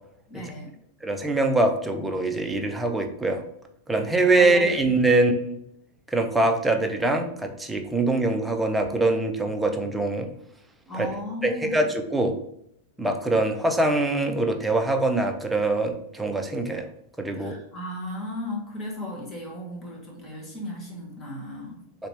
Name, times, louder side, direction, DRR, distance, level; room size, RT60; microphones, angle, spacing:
voice 1, 0.3-0.7 4.3-4.7 10.9-11.8 17.3-21.8, left 1 dB, 20° left, -1 dB, 1.1 m, -35 dB
voice 2, 1.0-3.4 3.9-5.6 6.1-10.3 10.9-11.1 11.4-12.4 13.0-16.9 17.2-17.6 22.0-22.1, right 2 dB, 5° right, 4 dB, 0.5 m, -23 dB
3.3 x 2.8 x 3.1 m, 0.71 s
hypercardioid pair, 130°, 0 cm